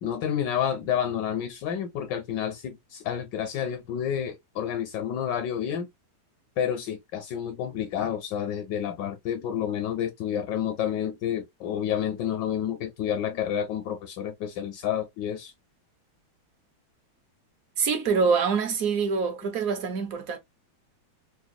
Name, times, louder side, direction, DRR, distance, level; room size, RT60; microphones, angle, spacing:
voice 1, 0.0-5.9 6.6-15.5, left 9 dB, 75° left, 1.1 m, -29 dB
voice 2, 17.8-20.4, right 5 dB, 60° right, 0.9 m, -25 dB
4.7 x 2.2 x 2.4 m
omnidirectional pair, 2.2 m